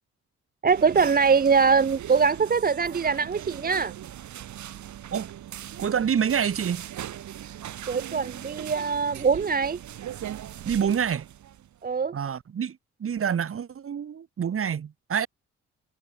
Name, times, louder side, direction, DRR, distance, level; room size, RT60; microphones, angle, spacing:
voice 1, 0.6-3.9 7.9-9.8 11.8-12.2, right 5 dB, 30° right, 0.9 m, -22 dB
sound 1, 0.7-11.8, right 11 dB, 70° right, 5.4 m, -40 dB
voice 2, 5.8-6.9 10.7-11.3 12.1-15.3, right 8 dB, 45° right, 2.1 m, -27 dB
cardioid pair, 90°, 30 cm